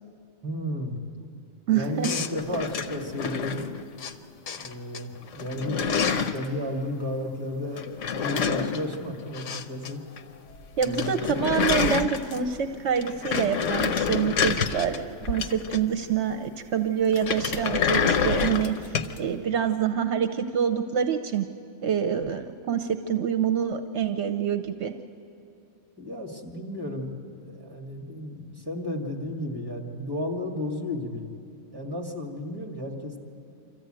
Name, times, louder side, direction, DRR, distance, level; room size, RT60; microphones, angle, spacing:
voice 1, 0.4-1.3 1.7-3.8 4.6-10.0 10.8-11.3 26.0-31.3 31.7-33.2, left 1 dB, 20° right, 0 dB, 2.3 m, -33 dB
voice 2, 1.7-2.1 10.8-21.5 21.8-24.9, right 8 dB, 75° right, 7 dB, 1.0 m, -26 dB
sound 1, 2.0-4.1 4.5-5.0 5.3-6.5 7.7-9.9 10.2-10.3 10.5-10.6 10.8-12.6 13.0-16.1 17.1-19.2, left 6 dB, 85° left, 1.2 m, -27 dB
25.5 x 14.0 x 8.9 m, 2.6 s
omnidirectional pair, 1.2 m